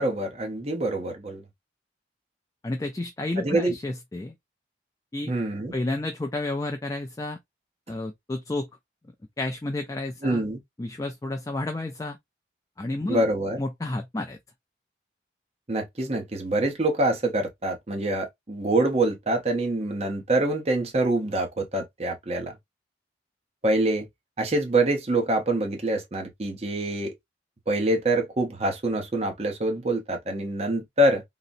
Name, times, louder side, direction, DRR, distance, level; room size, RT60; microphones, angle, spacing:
voice 1, 0.0-1.4 3.4-3.7 5.3-5.7 10.2-10.6 13.1-13.6 15.7-22.6 23.6-24.1 24.4-27.1 27.7-31.2, right 1 dB, 35° right, 0.8 m, -25 dB
voice 2, 2.6-4.3 5.1-5.3 5.7-7.4 7.9-8.7 9.4-10.4 10.8-12.2 12.8-13.2 13.6-14.4, left 2 dB, 20° left, 0.3 m, -31 dB
3.8 x 2.1 x 2.6 m
head